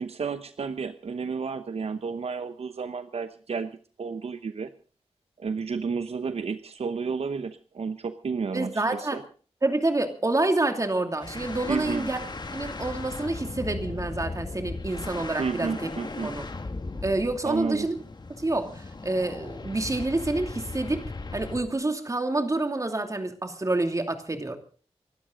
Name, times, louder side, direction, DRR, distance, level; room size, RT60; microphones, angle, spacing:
voice 1, 0.0-4.7 5.4-9.2 11.7-12.1 15.4-16.3 17.4-17.9, right 5 dB, 70° right, 10 dB, 0.9 m, -31 dB
voice 2, 8.5-9.2 9.6-12.2 12.5-15.9 16.2-16.5 17.0-17.9 18.4-21.0 21.3-24.6, right 2 dB, 30° right, 6 dB, 2.6 m, -28 dB
sound 1, 11.2-21.7, left 3 dB, 40° left, 1.8 m, -37 dB
24.5 x 12.5 x 3.9 m, 0.40 s
wide cardioid pair, 80°, 11 cm